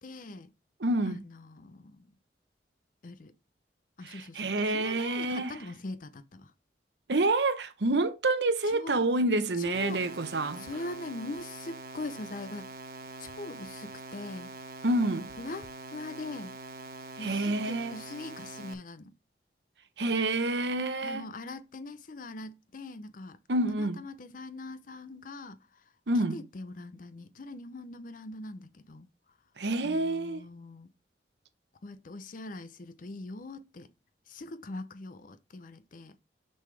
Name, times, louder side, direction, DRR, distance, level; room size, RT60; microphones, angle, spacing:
voice 1, 0.0-0.5 1.1-2.1 3.0-3.3 4.0-6.5 8.7-9.0 9.6-10.0 10.6-12.7 13.2-14.5 15.4-16.5 17.2-19.1 21.0-23.4 23.8-25.6 26.3-29.1 29.8-30.9 31.8-33.9 34.3-36.2, left 2 dB, 50° left, 0.6 m, -42 dB
voice 2, 0.8-1.2 4.0-5.6 7.1-10.7 14.8-15.3 17.2-18.0 20.0-21.3 23.5-24.0 26.1-26.4 29.6-30.4, right 2 dB, 75° right, 0.9 m, -28 dB
sound 1, 9.7-18.7, right 2 dB, 55° right, 1.1 m, -44 dB
6.6 x 5.5 x 3.3 m
head